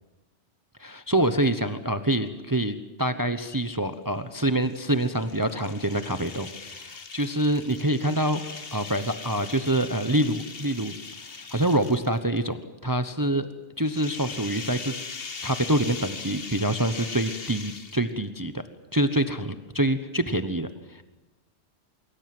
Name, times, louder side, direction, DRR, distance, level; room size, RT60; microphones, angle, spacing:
voice 1, 0.8-8.4 8.7-11.0 11.3-12.6 12.8-13.5 13.8-14.9 15.4-18.6 18.9-21.0, right 1 dB, 20° right, 10 dB, 1.0 m, -26 dB
sound 1, 4.6-12.4 13.8-18.3, left 5 dB, 55° left, 1.6 m, -40 dB
24.5 x 23.5 x 7.8 m, 1.1 s
omnidirectional pair, 1.2 m